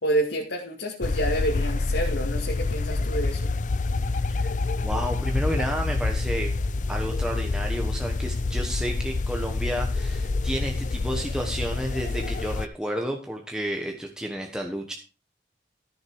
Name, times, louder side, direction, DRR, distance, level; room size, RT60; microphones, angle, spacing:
voice 1, 0.0-3.5, right 1 dB, 80° left, -1 dB, 2.3 m, -28 dB
sound 1, 1.0-12.7, left 3 dB, 45° left, 0.4 m, -27 dB
voice 2, 4.8-6.5 6.9-14.9, equal, 5° right, 1 dB, 1.2 m, -31 dB
13.5 x 6.5 x 4.8 m, 0.33 s
head